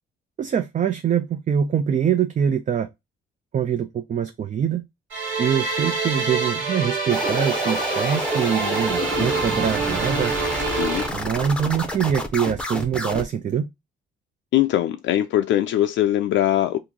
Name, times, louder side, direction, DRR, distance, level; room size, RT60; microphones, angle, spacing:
voice 1, 0.4-2.9 3.5-4.8 5.4-10.3 11.1-13.7, right 8 dB, 40° right, 0.4 m, -24 dB
sound 1, 5.1-11.1, right 4 dB, 75° right, 1.6 m, -26 dB
sound 2, 7.1-13.2, left 1 dB, 5° left, 0.7 m, -29 dB
voice 2, 9.0-9.4 10.7-11.1 14.5-16.8, left 13 dB, 75° left, 0.4 m, -22 dB
2.9 x 2.5 x 3.7 m
cardioid pair, 90°, 20 cm